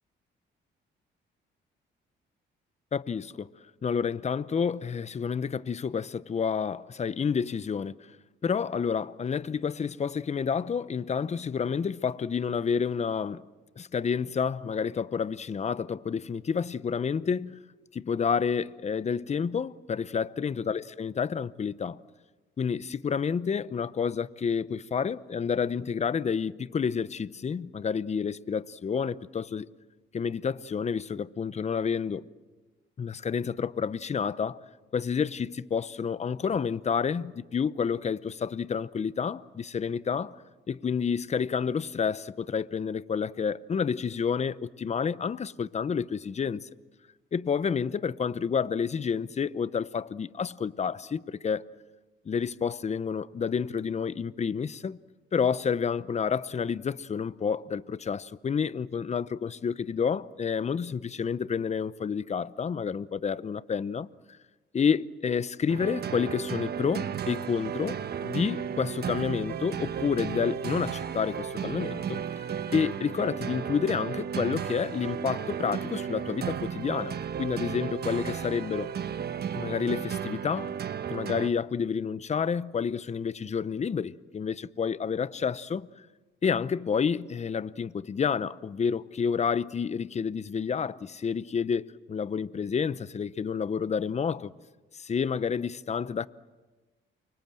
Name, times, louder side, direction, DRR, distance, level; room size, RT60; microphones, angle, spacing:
voice 1, 2.9-3.5 3.8-7.9 8.4-13.4 13.8-17.6 17.9-22.0 22.6-29.7 30.1-32.2 33.0-34.6 34.9-40.4 40.7-46.7 47.3-51.6 52.2-55.0 55.3-64.1 64.7-78.9 79.6-80.8 81.1-85.9 86.4-94.5 94.9-96.3, left 6 dB, 35° left, 0.8 m, -29 dB
sound 1, 65.7-81.5, right 8 dB, 55° right, 1.3 m, -34 dB
29.0 x 24.0 x 7.6 m
cardioid pair, 90°, 20 cm